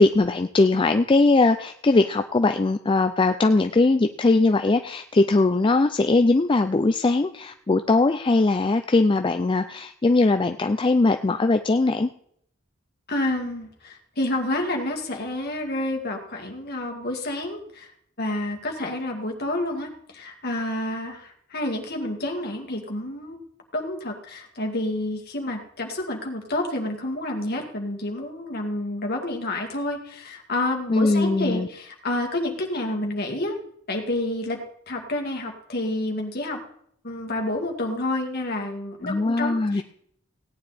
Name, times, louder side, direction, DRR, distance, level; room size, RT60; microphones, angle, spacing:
voice 1, 0.0-12.1 30.9-31.7 39.0-39.8, left 3 dB, 25° left, 8 dB, 0.4 m, -20 dB
voice 2, 13.1-17.9 18.2-23.4 23.7-33.6 33.9-34.6 34.9-36.6 37.0-39.8, left 1 dB, 50° left, 2 dB, 2.3 m, -29 dB
17.0 x 9.5 x 4.2 m, 0.68 s
head